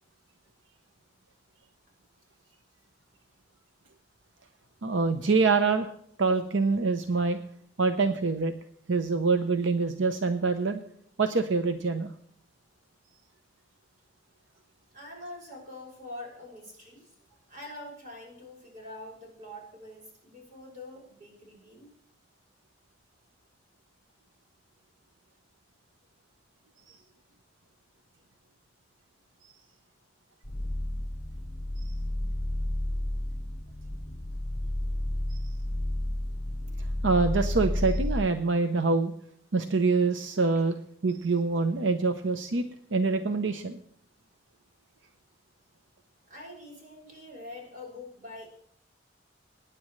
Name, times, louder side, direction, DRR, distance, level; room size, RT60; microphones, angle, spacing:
voice 1, 4.8-5.9 6.2-7.4 7.8-8.5 8.9-10.8 11.2-12.1 31.8-31.9 37.0-39.1 39.5-40.8 41.0-42.6 42.9-43.8, right 4 dB, 85° right, 8 dB, 0.8 m, -25 dB
voice 2, 14.9-21.9 46.3-48.5, left 1 dB, 45° right, -2 dB, 6.3 m, -45 dB
sound 1, 30.4-38.2, left 1 dB, 35° left, 5.5 m, -31 dB
23.5 x 10.0 x 3.2 m, 0.66 s
head